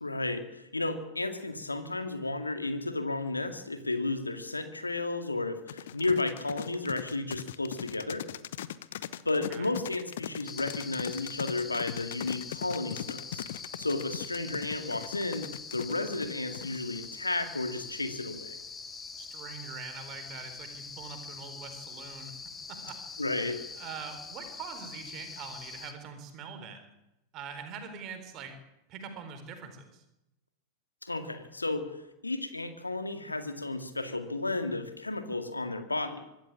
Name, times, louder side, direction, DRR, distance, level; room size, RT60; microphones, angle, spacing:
voice 1, 0.0-8.2 9.3-13.4 13.8-18.6 23.2-23.6 31.0-31.9 32.2-36.2, left 2 dB, 80° left, 8 dB, 2.1 m, -33 dB
sound 1, 5.7-17.1, left 11 dB, 60° left, 0.9 m, -39 dB
sound 2, 10.4-25.9, left 5 dB, 15° left, 2.5 m, -44 dB
voice 2, 19.2-22.3 22.7-23.0 23.4-26.9 27.3-28.6 28.9-30.0, right 6 dB, 35° right, 7 dB, 4.1 m, -43 dB
24.5 x 13.0 x 8.8 m, 0.89 s
figure-of-eight pair, 90°, 0 cm